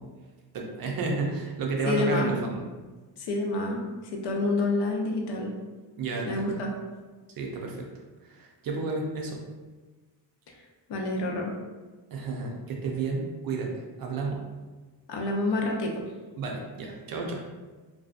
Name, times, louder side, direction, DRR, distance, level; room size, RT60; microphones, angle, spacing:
voice 1, 0.5-2.6 6.0-6.5 7.4-7.9 8.2-9.4 12.1-13.7 14.0-14.4 16.4-17.4, right 3 dB, 55° right, 0 dB, 0.5 m, -31 dB
voice 2, 1.9-2.3 3.2-3.8 4.1-5.5 6.2-6.7 10.9-11.5 15.1-16.0, left 2 dB, 65° left, 1 dB, 0.6 m, -28 dB
2.6 x 2.3 x 2.4 m, 1.3 s
wide cardioid pair, 150°, 43 cm